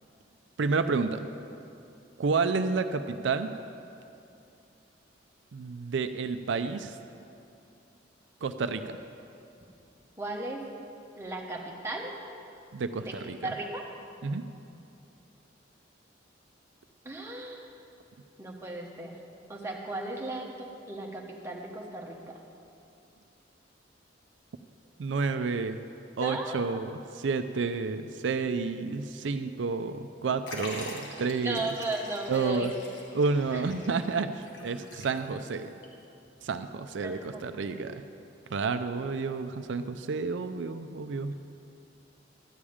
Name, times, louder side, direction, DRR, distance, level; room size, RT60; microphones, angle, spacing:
voice 1, 0.6-1.3 2.2-3.5 5.5-7.0 8.4-9.0 12.7-13.5 14.2-14.4 25.0-25.8 26.2-31.7 32.3-32.7 33.1-35.7 36.4-38.0 38.5-41.3, right 4 dB, 75° right, 9 dB, 0.4 m, -30 dB
voice 2, 10.2-10.6 11.2-12.1 13.0-13.1 13.4-13.8 17.0-17.6 18.4-19.2 19.5-22.3 26.2-26.6 31.4-32.7 33.5-33.6 37.0-37.4 37.8-37.9, right 2 dB, 15° right, -1 dB, 1.1 m, -36 dB
Liquid, 30.5-35.5 35.8-35.9 36.9-37.0, left 1 dB, 65° left, 1.7 m, -44 dB
12.5 x 4.9 x 8.7 m, 2.7 s
head